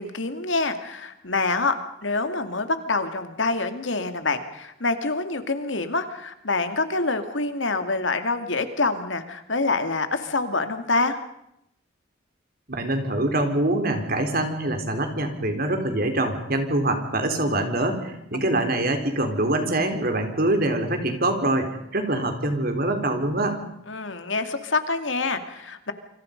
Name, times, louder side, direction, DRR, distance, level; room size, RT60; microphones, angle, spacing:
voice 1, 0.0-1.8 2.0-11.2 18.3-18.4 23.9-25.9, left 3 dB, 70° left, 8 dB, 2.4 m, -26 dB
voice 2, 12.7-23.6, right 1 dB, 50° right, 6 dB, 4.0 m, -24 dB
28.0 x 25.5 x 5.3 m, 0.79 s
head